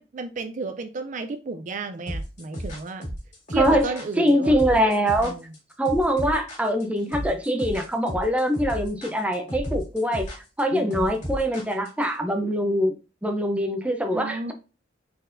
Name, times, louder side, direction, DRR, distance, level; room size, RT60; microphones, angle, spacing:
voice 1, 0.0-3.1 3.5-4.6 5.2-5.4 10.7-11.2 14.1-14.5, right 3 dB, 45° right, 0.4 m, -32 dB
sound 1, 2.1-12.1, equal, 40° left, 2.4 m, -33 dB
voice 2, 3.6-5.3 5.8-12.9 13.2-14.5, equal, 5° right, 0.6 m, -23 dB
4.3 x 4.0 x 2.5 m
head